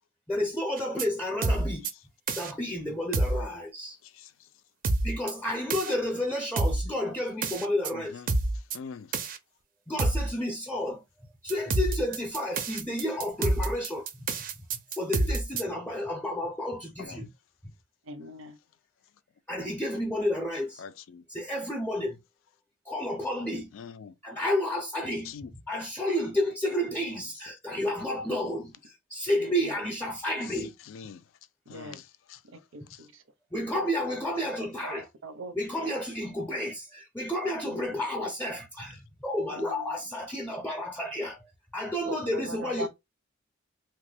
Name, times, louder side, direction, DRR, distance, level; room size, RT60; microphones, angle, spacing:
voice 1, 0.3-1.9 2.4-4.0 5.0-8.2 9.9-11.0 11.4-14.1 14.9-17.3 19.5-20.8 21.3-22.2 22.9-23.7 24.2-25.3 25.7-30.7 33.5-35.1 35.5-42.9, left 1 dB, 10° left, 0.5 m, -31 dB
sound 1, 0.8-1.0 1.4-1.9 2.3-2.5 3.1-3.4 4.8-5.3 5.7-5.9 6.6-6.9 7.4-7.9 8.3-8.8 9.1-9.4 10.0-10.3 11.5-15.6, right 2 dB, 45° right, 0.4 m, -27 dB
voice 2, 7.9-8.3 8.7-9.1 17.0-17.2 20.8-21.2 23.7-24.1 25.3-25.5 30.8-31.2 31.7-32.4 32.9-33.0, left 6 dB, 80° left, 0.4 m, -44 dB
voice 3, 18.1-18.6 31.7-32.0 32.7-33.1 34.8-35.9 39.5-40.0 42.0-42.9, right 1 dB, 85° right, 0.6 m, -40 dB
3.0 x 2.2 x 3.3 m
head